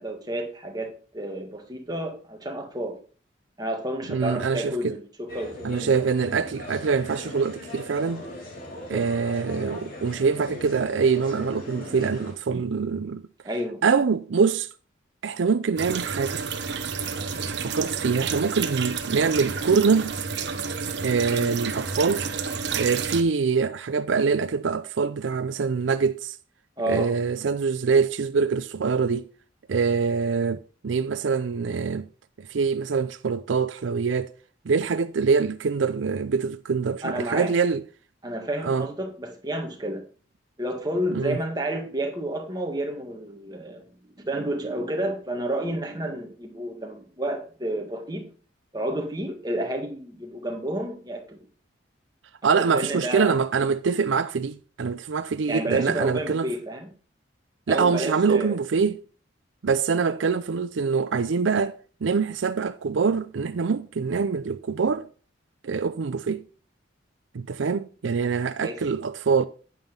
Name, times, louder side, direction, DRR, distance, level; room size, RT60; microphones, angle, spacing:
voice 1, 0.0-3.0 3.6-6.1 8.8-9.1 13.4-13.8 21.3-21.6 26.8-27.1 37.0-37.5 38.2-40.0 40.6-48.3 48.7-51.4 52.6-53.4 55.5-56.9 57.7-58.6 68.6-68.8, right 1 dB, 20° right, 1.9 m, -30 dB
voice 2, 4.1-4.9 5.6-8.2 8.9-13.2 13.8-14.7 15.2-16.4 17.6-20.1 21.0-22.2 22.8-26.4 26.9-29.3 29.7-32.1 32.4-34.3 34.7-37.8 38.6-38.9 41.1-41.4 52.4-56.5 57.7-59.0 59.6-65.1 65.6-66.4 67.3-69.4, right 5 dB, 80° right, 0.5 m, -24 dB
sound 1, 5.3-12.3, left 1 dB, 50° left, 3.1 m, -39 dB
sound 2, 15.8-23.2, right 5 dB, 60° right, 1.0 m, -30 dB
9.2 x 9.0 x 3.8 m
head